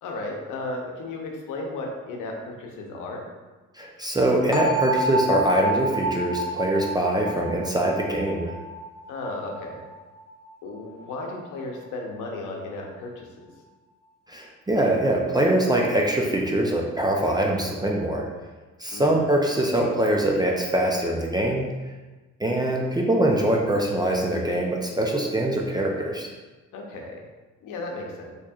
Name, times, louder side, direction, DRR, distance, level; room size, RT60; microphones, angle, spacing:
voice 1, 0.0-3.2 9.1-9.8 10.6-13.5 18.9-19.2 26.7-27.2 27.6-28.3, left 2 dB, 90° left, 0 dB, 0.8 m, -34 dB
voice 2, 3.8-8.5 14.3-18.3 18.8-21.7 22.4-26.3, right 1 dB, 15° right, -1 dB, 0.5 m, -23 dB
sound 1, 4.5-10.4, right 1 dB, ahead, 1.0 m, -29 dB
4.3 x 3.1 x 2.3 m, 1.2 s
cardioid pair, 90°, 30 cm